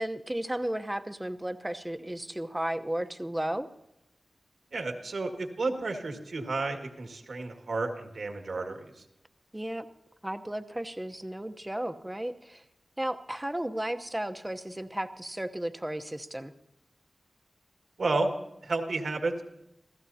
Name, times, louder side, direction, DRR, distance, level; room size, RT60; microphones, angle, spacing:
voice 1, 0.0-3.7 9.5-9.9 10.2-12.6 13.0-16.5, right 1 dB, 15° right, 8 dB, 0.9 m, -34 dB
voice 2, 4.7-8.9 18.0-18.3 18.6-19.4, right 3 dB, 75° right, 4 dB, 1.9 m, -31 dB
27.0 x 16.0 x 2.8 m, 0.87 s
wide cardioid pair, 90°, 0 cm